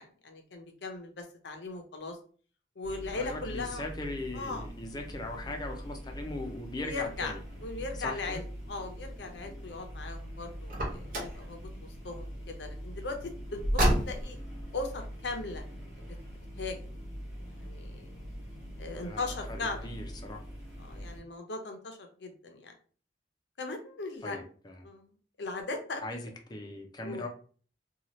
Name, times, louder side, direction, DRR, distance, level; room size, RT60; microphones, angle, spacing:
voice 1, 0.0-2.2 2.8-3.8 4.3-4.7 6.8-7.3 7.6-11.6 12.0-14.4 14.7-15.6 16.6-16.8 17.6-18.1 18.8-19.9 20.8-22.7 23.6-24.4 24.8-25.1 25.4-26.0 27.0-27.3, left 3 dB, 75° left, 5 dB, 0.6 m, -38 dB
sound 1, 2.8-21.2, equal, ahead, 1.3 m, -43 dB
voice 2, 3.2-7.4 8.0-8.4 18.9-20.4 24.2-24.8 26.0-27.3, left 2 dB, 25° left, 2 dB, 0.5 m, -39 dB
Car, 10.7-11.4 13.6-14.4, equal, 50° right, 0.9 m, -28 dB
2.8 x 2.3 x 3.0 m, 0.42 s
head